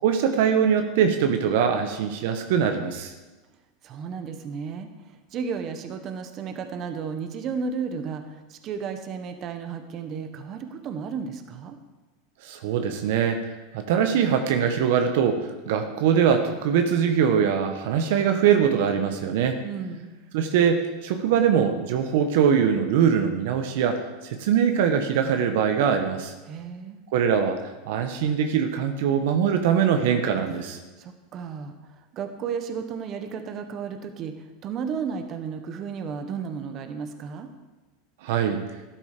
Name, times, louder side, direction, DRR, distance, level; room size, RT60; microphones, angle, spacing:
voice 1, 0.0-3.1 12.4-19.6 20.3-26.3 27.1-27.6 27.9-30.8 38.2-38.6, right 7 dB, 70° right, 6 dB, 1.3 m, -22 dB
voice 2, 3.8-11.8 19.6-20.1 26.5-27.0 31.0-37.5, right 6 dB, 40° right, 7 dB, 1.4 m, -33 dB
12.5 x 11.0 x 5.2 m, 1.2 s
supercardioid pair, 115°, 0 cm